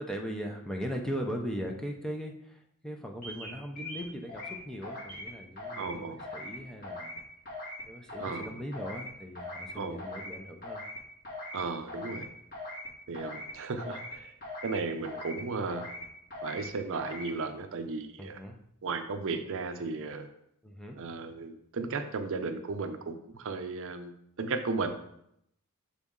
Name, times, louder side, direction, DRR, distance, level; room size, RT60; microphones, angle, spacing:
voice 1, 0.0-7.2 7.9-10.8 18.2-18.6 20.6-21.0, equal, 5° left, 1 dB, 0.6 m, -39 dB
sound 1, 3.2-3.5 3.7-4.6 4.8-5.3 5.6-5.9 6.2-6.5 6.8-7.2 7.4-7.8 8.1-8.4 8.7-9.1 9.3-9.7 10.0-10.3 10.6-11.0 11.2-11.6 11.9-12.2 12.5-12.9 13.1-13.5 13.8-14.1 14.4-14.8 15.0-15.4 15.7-16.0 16.3-16.7 16.9-17.3, left 2 dB, 40° left, 2.3 m, -41 dB
voice 2, 5.7-6.3 8.2-8.6 9.7-10.0 11.5-12.3 13.1-14.3 14.6-15.9 16.4-18.4 18.8-20.3 21.0-24.1 24.4-24.9, right 4 dB, 65° right, 8 dB, 0.6 m, -35 dB
7.0 x 4.1 x 3.7 m, 0.73 s
head